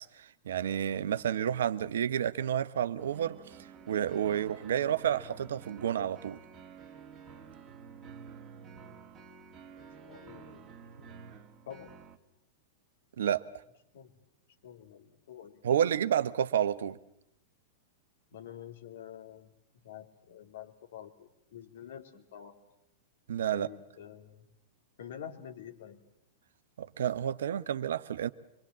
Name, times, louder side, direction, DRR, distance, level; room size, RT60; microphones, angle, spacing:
voice 1, 0.0-3.4 3.9-6.4 13.2-13.4 15.6-17.0 23.3-23.7 26.8-28.3, right 9 dB, 70° right, 0.9 m, -30 dB
sound 1, 3.0-12.2, right 6 dB, 25° right, 2.2 m, -50 dB
voice 2, 10.0-11.3 11.7-11.9 13.9-14.1 14.6-16.1 18.3-19.5 19.8-22.6 23.5-24.5 25.0-26.0, left 9 dB, 65° left, 3.0 m, -48 dB
25.5 x 24.0 x 7.4 m
figure-of-eight pair, 100°, 0 cm